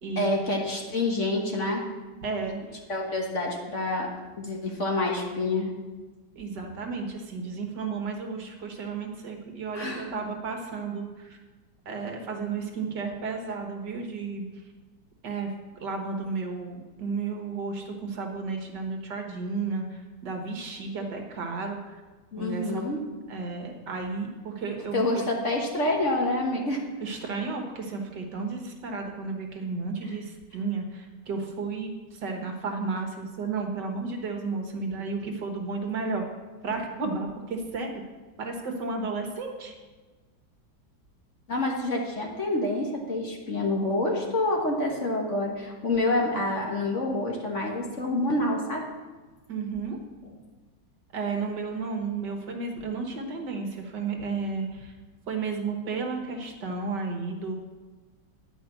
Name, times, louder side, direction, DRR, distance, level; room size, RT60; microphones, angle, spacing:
voice 1, 0.1-1.9 2.9-5.7 9.7-10.2 22.3-23.0 24.9-26.8 41.5-48.8, left 2 dB, 40° left, 0 dB, 1.6 m, -27 dB
voice 2, 2.2-2.8 6.4-11.4 11.9-14.5 15.2-15.5 15.8-21.9 22.4-22.8 23.3-25.2 27.0-36.2 36.6-37.9 38.4-39.8 49.5-50.0 51.1-55.0 55.3-57.6, right 4 dB, 65° right, 3 dB, 1.9 m, -33 dB
11.0 x 5.3 x 8.0 m, 1.3 s
omnidirectional pair, 2.0 m